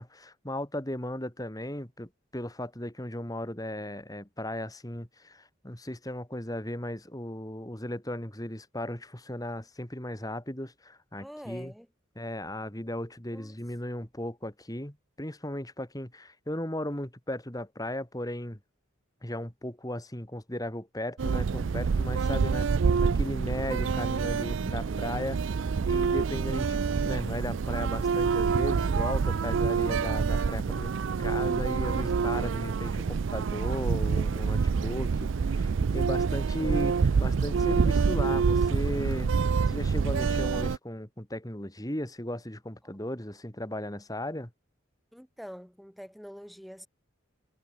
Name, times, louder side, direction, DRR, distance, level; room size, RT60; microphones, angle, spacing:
voice 1, 0.0-11.7 12.2-18.6 19.2-25.4 25.9-39.3 39.7-44.5, left 1 dB, 20° left, 2.7 m, -36 dB
voice 2, 11.2-11.9 13.3-13.6 24.8-25.3 45.1-46.9, equal, ahead, 2.4 m, -46 dB
sound 1, 21.2-40.8, right 5 dB, 65° right, 0.4 m, -27 dB
head